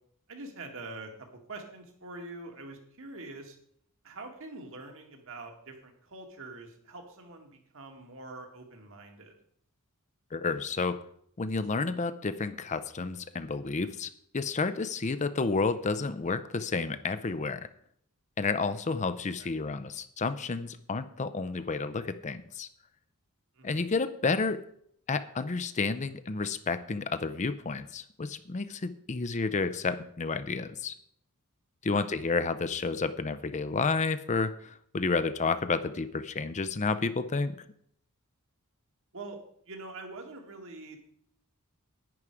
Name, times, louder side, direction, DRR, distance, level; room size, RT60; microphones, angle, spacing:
voice 1, 0.3-1.1 1.5-3.6 4.0-9.4 19.4-19.5 23.6-23.8 31.9-32.0 39.1-39.4 39.7-41.0, right 2 dB, 65° right, 4 dB, 2.2 m, -44 dB
voice 2, 10.3-11.0 11.4-17.7 18.4-22.7 23.6-24.6 25.1-30.9 31.8-37.5, left 4 dB, 30° left, 11 dB, 0.5 m, -31 dB
11.0 x 9.6 x 4.9 m, 0.66 s
head